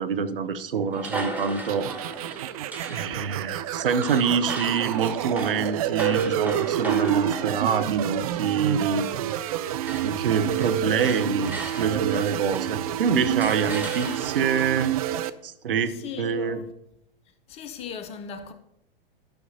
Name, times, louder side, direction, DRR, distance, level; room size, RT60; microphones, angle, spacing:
voice 1, 0.0-1.9 2.8-9.1 10.0-14.9 15.4-16.6, right 6 dB, 65° right, 0.8 m, -26 dB
sound 1, 0.9-9.6 9.8-12.9 13.4-14.6, right 2 dB, 5° right, 1.0 m, -38 dB
sound 2, 1.7-15.3, right 11 dB, 40° right, 0.4 m, -28 dB
voice 2, 3.1-3.4 15.9-16.7 17.5-18.5, left 6 dB, 20° left, 0.6 m, -38 dB
12.5 x 6.0 x 2.8 m
figure-of-eight pair, 100°, 30 cm